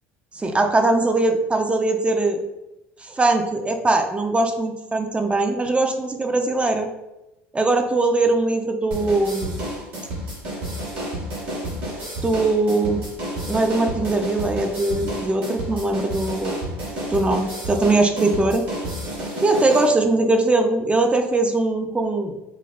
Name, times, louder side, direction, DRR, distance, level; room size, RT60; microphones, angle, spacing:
voice 1, 0.3-2.4 3.0-6.9 7.5-9.6 12.2-13.0 13.5-16.6 17.1-18.6 19.4-22.3, right 2 dB, 15° right, 5 dB, 0.5 m, -21 dB
sound 1, 8.9-19.9, right 1 dB, 75° right, 1.4 m, -30 dB
5.1 x 2.2 x 2.3 m, 0.95 s
hypercardioid pair, 70°, 7 cm